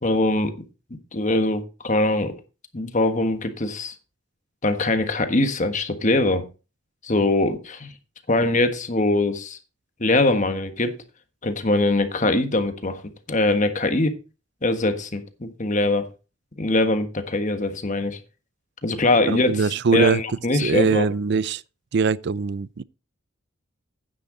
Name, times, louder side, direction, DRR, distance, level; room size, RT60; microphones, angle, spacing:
voice 1, 0.0-0.5 1.1-2.3 2.7-3.9 4.6-6.5 7.0-7.9 8.3-9.6 10.0-10.9 11.4-13.0 13.3-14.1 14.6-16.1 16.6-18.2 18.8-19.7 19.9-21.1, left 2 dB, 40° left, 1.4 m, -22 dB
voice 2, 19.3-20.2 20.5-21.6 21.9-22.8, right 5 dB, 55° right, 0.4 m, -22 dB
9.9 x 9.4 x 3.8 m
head